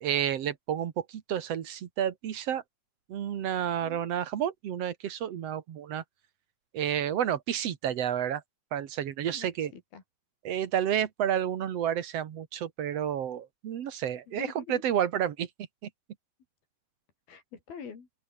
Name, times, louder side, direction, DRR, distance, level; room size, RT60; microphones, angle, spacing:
voice 1, 0.0-2.6 3.1-6.0 6.7-8.4 8.7-9.7 10.4-15.5, right 10 dB, 75° right, 1.4 m, -30 dB
voice 2, 3.8-4.1 9.3-10.0 14.3-14.8 17.3-18.1, left 6 dB, 55° left, 5.7 m, -45 dB
open air
omnidirectional pair, 5.2 m